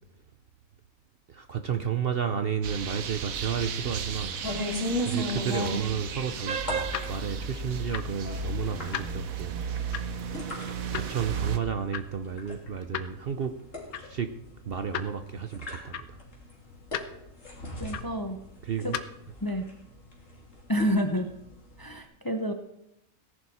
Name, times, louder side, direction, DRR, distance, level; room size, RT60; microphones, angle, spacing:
voice 1, 1.3-4.4 5.0-9.9 10.9-13.5 14.0-14.3 14.7-16.2 18.6-19.0, right 7 dB, 55° right, 8 dB, 0.7 m, -32 dB
sound 1, 2.6-11.6, right 5 dB, 75° right, 1.4 m, -34 dB
sound 2, 4.4-22.0, left 1 dB, 60° left, 3.2 m, -38 dB
sound 3, 6.8-19.3, left 9 dB, 80° left, 1.2 m, -41 dB
voice 2, 17.8-18.4 19.4-19.7 20.7-21.3 21.8-22.5, equal, 20° left, 6 dB, 0.6 m, -28 dB
17.5 x 11.0 x 4.2 m, 0.84 s
omnidirectional pair, 1.5 m